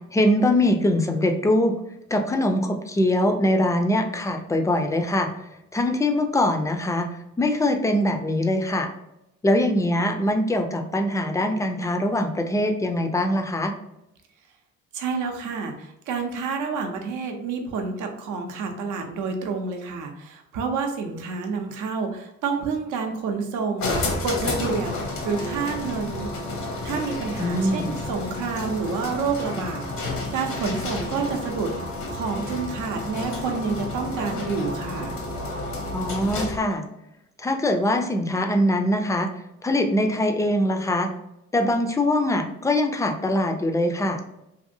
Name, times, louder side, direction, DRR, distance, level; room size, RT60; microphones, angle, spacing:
voice 1, 0.1-1.7 2.1-5.3 5.7-7.1 7.4-8.9 9.4-13.7 27.4-27.9 35.9-36.8 37.4-39.3 39.6-41.1 41.5-44.2, left 1 dB, 10° left, 5 dB, 0.3 m, -22 dB
voice 2, 14.9-26.3 26.8-31.7 32.1-35.2, right 5 dB, 85° right, 4 dB, 0.6 m, -29 dB
sound 1, 23.8-36.7, left 2 dB, 70° left, 0.8 m, -31 dB
2.7 x 2.5 x 2.6 m, 0.85 s
cardioid pair, 90°, 30 cm